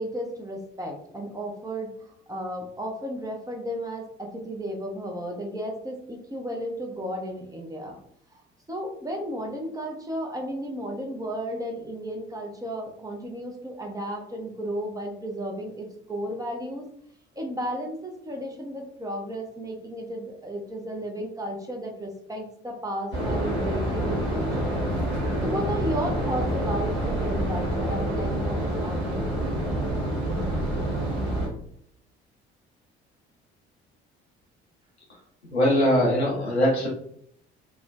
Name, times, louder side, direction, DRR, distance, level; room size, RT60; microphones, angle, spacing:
voice 1, 0.0-8.0 8.3-8.4 8.7-16.9 17.4-24.8 25.4-29.6, equal, 10° right, 0 dB, 0.5 m, -34 dB
sound 1, 23.1-31.5, right 1 dB, 75° right, 1.2 m, -27 dB
voice 2, 35.5-36.9, equal, 85° left, -3 dB, 0.7 m, -21 dB
3.1 x 2.0 x 2.3 m, 0.67 s
figure-of-eight pair, 50°, 32 cm